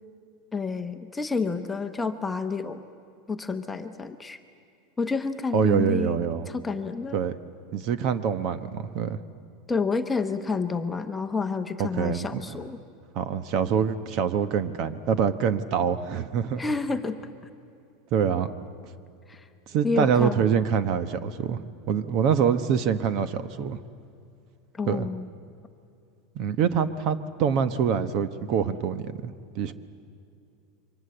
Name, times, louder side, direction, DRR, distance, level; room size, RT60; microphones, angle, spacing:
voice 1, 0.5-2.8 3.3-4.4 5.0-6.2 6.5-7.2 9.7-12.8 16.6-17.2 19.3-19.5 19.8-20.4 24.7-25.3, left 4 dB, 10° left, 6 dB, 1.0 m, -29 dB
voice 2, 5.5-6.5 7.1-7.4 7.7-9.2 11.8-12.4 13.1-16.6 18.1-18.5 19.7-23.8 24.8-25.1 26.3-29.7, right 7 dB, 45° right, 12 dB, 1.0 m, -25 dB
28.0 x 24.5 x 7.9 m, 2.6 s
supercardioid pair, 165°, 0 cm